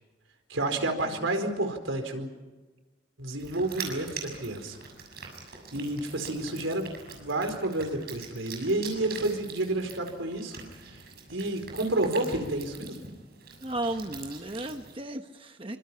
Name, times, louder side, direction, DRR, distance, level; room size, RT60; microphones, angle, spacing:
voice 1, 0.5-2.3 3.2-4.8 5.7-10.6 10.8-11.0 11.3-13.0, right 2 dB, 85° right, 6 dB, 4.5 m, -30 dB
sound 1, 3.4-14.9, right 5 dB, 50° right, 6.8 m, -43 dB
voice 2, 13.6-15.8, right 1 dB, 25° right, 6 dB, 1.1 m, -35 dB
27.0 x 25.5 x 5.8 m, 1.2 s
head